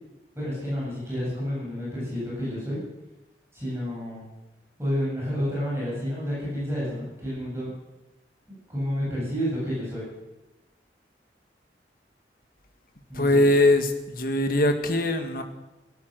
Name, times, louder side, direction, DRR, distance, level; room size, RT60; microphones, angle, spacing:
voice 1, 0.3-2.8 3.5-4.2 4.8-7.7 8.5-10.1 13.1-13.4, equal, 15° right, -7 dB, 7.9 m, -30 dB
voice 2, 13.1-15.4, left 1 dB, 55° left, 6 dB, 1.8 m, -21 dB
16.5 x 13.5 x 6.6 m, 1.0 s
head